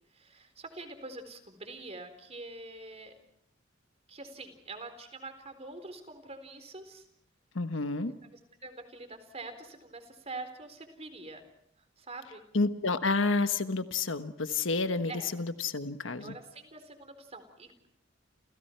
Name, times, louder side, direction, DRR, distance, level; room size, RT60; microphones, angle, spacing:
voice 1, 0.1-3.1 4.1-7.1 8.2-11.4 12.0-12.4 15.1-15.3 16.2-17.9, right 2 dB, 35° right, 8 dB, 4.1 m, -45 dB
voice 2, 7.5-8.1 12.5-16.4, left 3 dB, 70° left, 9 dB, 1.4 m, -30 dB
29.5 x 29.0 x 4.6 m, 0.68 s
head